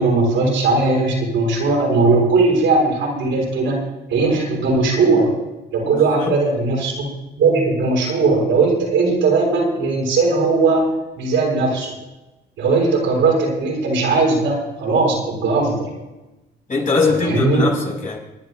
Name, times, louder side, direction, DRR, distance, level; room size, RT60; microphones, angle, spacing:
voice 1, 0.0-3.8 4.1-5.3 5.7-7.1 7.4-11.9 12.6-15.9 17.2-17.7, right 3 dB, 75° right, 6.5 m, -18 dB
voice 2, 5.9-6.3 16.7-18.2, left 4 dB, 40° left, 5.4 m, -21 dB
29.5 x 11.0 x 2.6 m
cardioid pair, 90°, 20 cm